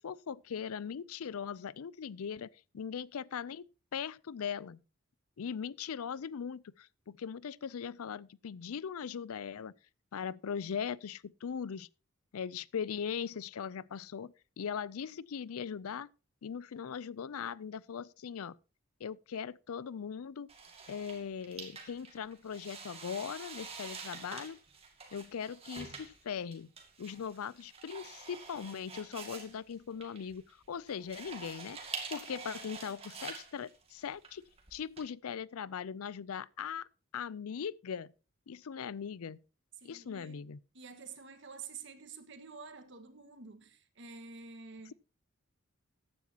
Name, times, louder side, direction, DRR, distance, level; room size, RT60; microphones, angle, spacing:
voice 1, 0.0-2.5 2.7-4.8 5.4-9.7 10.1-11.9 12.3-16.1 16.4-18.6 19.0-20.5 20.9-24.6 25.1-26.7 27.0-31.8 32.1-36.9 37.1-38.1 38.5-39.4 39.8-40.6, left 7 dB, 80° left, 0.4 m, -40 dB
sound 1, 20.5-35.0, right 4 dB, 25° right, 2.1 m, -47 dB
voice 2, 39.8-40.4 40.7-44.9, right 5 dB, 55° right, 1.6 m, -49 dB
14.5 x 9.9 x 2.9 m
head